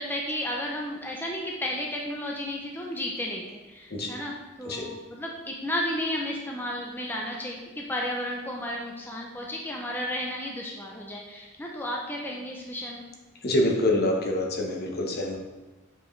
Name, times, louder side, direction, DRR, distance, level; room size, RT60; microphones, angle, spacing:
voice 1, 0.0-4.3 4.6-13.1, left 1 dB, 10° left, -1 dB, 0.6 m, -33 dB
voice 2, 3.9-4.2 4.6-4.9 13.4-15.4, left 1 dB, 50° left, 0 dB, 1.0 m, -26 dB
7.6 x 4.9 x 3.2 m, 1.1 s
head